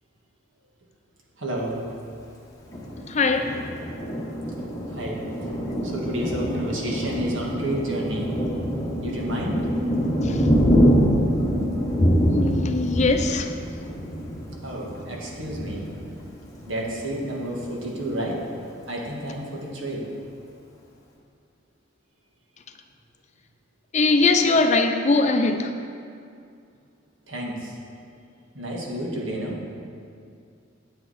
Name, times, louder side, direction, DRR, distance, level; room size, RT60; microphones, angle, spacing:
voice 1, 1.4-1.8 4.9-5.6 5.8-8.4 9.0-9.6 14.6-15.9 16.6-18.4 18.9-20.1 27.3-27.7 28.6-29.6, right 1 dB, 85° right, -2 dB, 1.8 m, -30 dB
Thunder, 2.7-17.0 17.5-17.7 18.0-18.6, equal, 20° left, 1.4 m, -25 dB
voice 2, 3.1-3.6 10.2-10.5 12.3-13.5 23.9-25.7, left 3 dB, 35° left, 6 dB, 0.6 m, -21 dB
9.4 x 8.7 x 4.2 m, 2.4 s
head